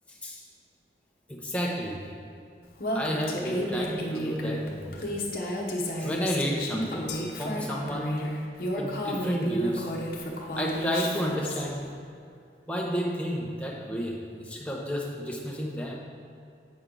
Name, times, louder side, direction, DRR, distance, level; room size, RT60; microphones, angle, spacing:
voice 1, 0.1-0.4 1.3-2.0 2.9-4.9 6.0-8.2 8.8-9.9 10.5-11.9 12.7-16.0, equal, 5° left, -2 dB, 0.8 m, -31 dB
Female speech woman speaking, 2.8-11.6, equal, 50° left, 1.0 m, -31 dB
sound 1, 7.1-8.5, left 7 dB, 85° left, 0.6 m, -45 dB
8.2 x 6.3 x 3.8 m, 2.4 s
head